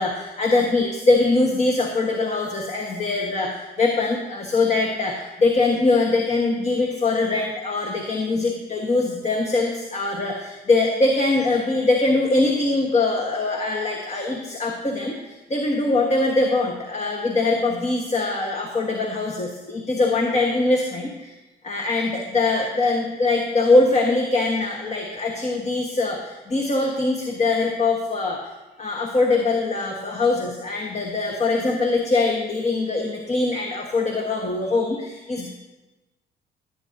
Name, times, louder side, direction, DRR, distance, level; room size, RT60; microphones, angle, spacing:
voice 1, 0.0-21.3 21.6-28.4 28.8-35.5, left 3 dB, 35° left, 1 dB, 1.3 m, -22 dB
16.5 x 9.0 x 2.7 m, 1.1 s
cardioid pair, 90°, 20 cm